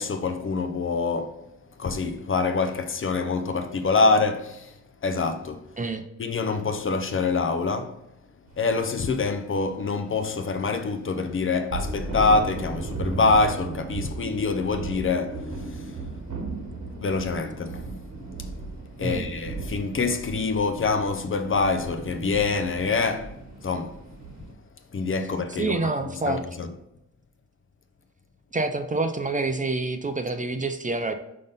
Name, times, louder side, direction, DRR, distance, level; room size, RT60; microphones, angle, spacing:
voice 1, 0.0-1.4 1.8-4.7 5.0-5.7 6.2-8.0 8.6-16.0 17.0-17.9 19.0-24.0 24.9-25.8 26.3-26.7, left 4 dB, 45° left, 0.6 m, -25 dB
sound 1, 8.5-8.7 9.0-9.3 11.4-24.5, right 3 dB, 70° right, 1.3 m, -36 dB
voice 2, 25.6-26.4 28.5-31.1, right 3 dB, 25° right, 0.5 m, -27 dB
5.6 x 5.2 x 4.0 m
wide cardioid pair, 130°, 30 cm